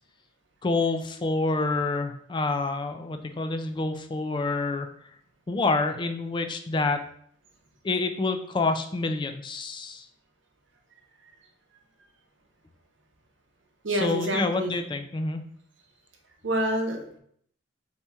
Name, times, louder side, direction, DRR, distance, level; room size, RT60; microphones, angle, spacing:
voice 1, 0.6-4.9 5.5-7.0 7.8-10.1 14.0-15.4, left 3 dB, 25° left, 7 dB, 0.3 m, -27 dB
voice 2, 13.8-14.8 16.4-17.2, right 1 dB, 65° right, 2 dB, 0.8 m, -27 dB
4.3 x 2.9 x 3.4 m, 0.65 s
head